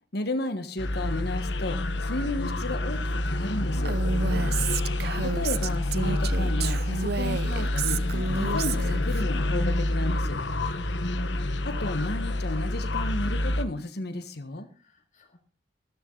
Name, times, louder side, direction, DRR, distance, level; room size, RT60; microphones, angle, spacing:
voice 1, 0.1-3.9 5.2-8.0 8.3-10.4 11.6-14.7, left 2 dB, 65° left, 9 dB, 1.5 m, -33 dB
sound 1, 0.8-13.6, left 1 dB, 85° left, 1.2 m, -27 dB
Female speech woman speaking, 3.9-9.2, right 5 dB, 60° right, 0.7 m, -31 dB
voice 2, 10.6-11.4 14.6-15.4, left 1 dB, 45° left, 3 dB, 2.2 m, -49 dB
15.0 x 13.5 x 4.0 m, 0.36 s
head